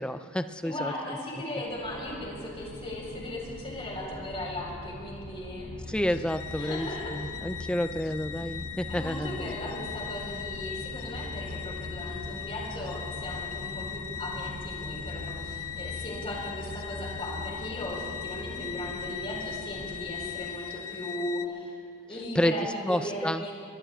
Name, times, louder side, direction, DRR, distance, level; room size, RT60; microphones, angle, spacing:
voice 1, 0.0-1.2 5.9-9.5 22.3-23.4, equal, 5° left, 10 dB, 0.3 m, -30 dB
voice 2, 0.6-5.9 6.5-7.1 8.9-21.8 22.1-23.5, left 1 dB, 25° left, -3 dB, 4.3 m, -37 dB
sound 1, 1.7-20.4, left 1 dB, 60° right, 4.4 m, -42 dB
sound 2, 6.1-21.5, left 9 dB, 75° left, 0.6 m, -40 dB
24.0 x 22.5 x 2.4 m, 2.3 s
head